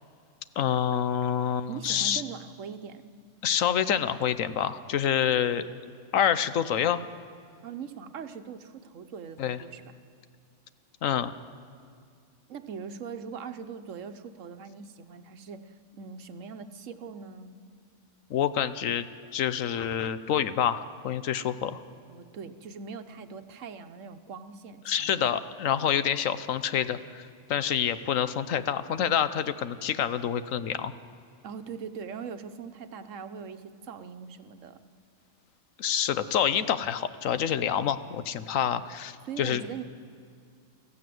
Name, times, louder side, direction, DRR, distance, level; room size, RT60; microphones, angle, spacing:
voice 1, 0.6-2.2 3.4-5.7 6.1-7.0 9.4-9.6 11.0-11.3 18.3-19.1 19.3-21.8 24.8-30.9 35.8-39.6, left 9 dB, 85° left, 13 dB, 1.2 m, -27 dB
voice 2, 1.7-3.0 7.6-9.9 12.5-17.6 22.1-25.4 31.4-34.8 39.2-39.8, right 6 dB, 75° right, 9 dB, 1.3 m, -41 dB
24.5 x 15.0 x 7.7 m, 2.3 s
omnidirectional pair, 1.3 m